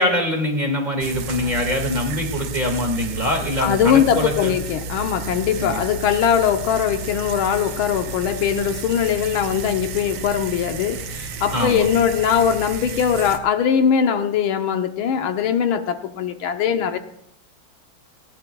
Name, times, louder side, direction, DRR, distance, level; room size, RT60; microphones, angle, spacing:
voice 1, 0.0-4.6 5.6-5.8 11.5-11.9, left 1 dB, 20° right, 1.9 m, -23 dB
sound 1, 1.0-13.4, right 3 dB, 80° right, 1.8 m, -32 dB
voice 2, 3.6-17.0, left 8 dB, 80° left, 1.6 m, -21 dB
20.0 x 18.5 x 2.3 m
omnidirectional pair, 2.3 m